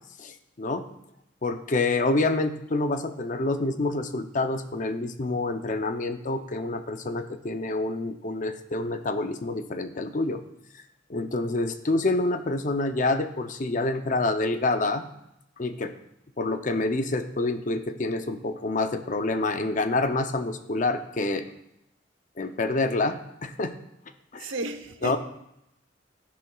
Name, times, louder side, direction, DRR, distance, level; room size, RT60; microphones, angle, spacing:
voice 1, 0.2-0.8 1.4-10.4 11.1-15.0 15.6-15.9 16.4-21.5 22.4-23.7 24.3-24.5 25.0-25.2, left 2 dB, 40° left, 0.6 m, -27 dB
voice 2, 24.4-25.2, right 2 dB, 85° right, 0.9 m, -33 dB
11.5 x 10.5 x 2.3 m
head